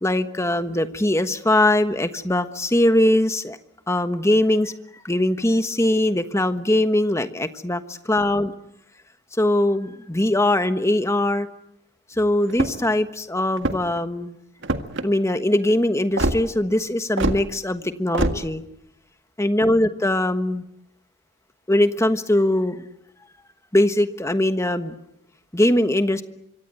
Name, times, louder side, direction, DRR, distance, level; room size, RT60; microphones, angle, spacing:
voice 1, 0.0-3.6 3.9-4.7 5.0-8.5 9.4-11.5 12.1-14.4 15.0-18.6 19.4-20.6 21.7-22.9 23.7-24.9 25.5-26.2, left 1 dB, 15° left, 10 dB, 1.3 m, -21 dB
sound 1, 12.5-12.9 13.5-14.0 14.6-15.1 16.2-16.4 17.2-17.4 18.1-18.4, right 1 dB, 55° right, 1.8 m, -23 dB
26.5 x 24.5 x 7.9 m, 0.82 s
head